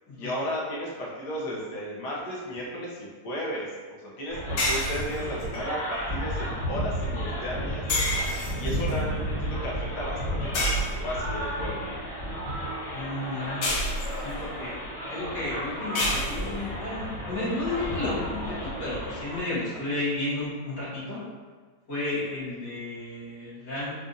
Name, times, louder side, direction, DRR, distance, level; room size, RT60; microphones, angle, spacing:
voice 1, 0.2-3.7 4.0-7.8 8.6-11.8 22.1-22.2, equal, 75° left, -5 dB, 1.4 m, -34 dB
sound 1, 4.3-19.4, equal, 25° left, 0.9 m, -33 dB
sound 2, 4.6-5.6 7.9-8.9 10.5-11.4 13.6-14.5 15.9-16.7, left 1 dB, 90° left, 1.4 m, -29 dB
voice 2, 8.6-8.9 12.9-13.6 14.1-14.7 15.1-21.2 21.9-23.9, left 2 dB, 55° left, -12 dB, 1.8 m, -32 dB
4.1 x 2.5 x 2.6 m, 1.5 s
omnidirectional pair, 1.9 m